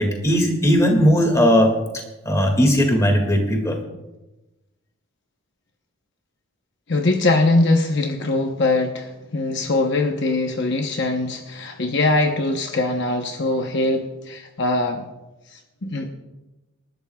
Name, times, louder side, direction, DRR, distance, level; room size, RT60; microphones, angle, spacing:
voice 1, 0.0-1.8 2.2-3.8, equal, 15° left, 2 dB, 2.1 m, -17 dB
voice 2, 6.9-15.1 15.5-16.1, left 2 dB, 50° left, 4 dB, 0.9 m, -22 dB
27.0 x 12.0 x 2.3 m, 1.0 s
head